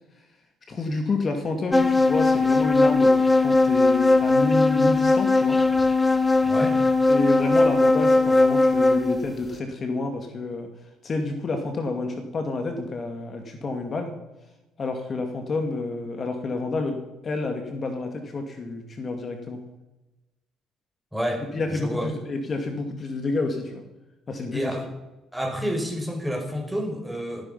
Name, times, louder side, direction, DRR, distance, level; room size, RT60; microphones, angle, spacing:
voice 1, 0.7-5.6 7.1-10.7 11.0-14.1 14.8-19.6 21.5-23.8 24.3-24.7, left 3 dB, 45° left, 5 dB, 2.3 m, -29 dB
sound 1, 1.7-9.2, left 2 dB, 15° left, 1.3 m, -19 dB
voice 2, 6.4-6.8 21.1-22.1 24.5-24.9 25.3-27.4, equal, 5° right, 3 dB, 5.5 m, -29 dB
14.5 x 13.5 x 5.7 m, 1.0 s
hypercardioid pair, 55°, 0 cm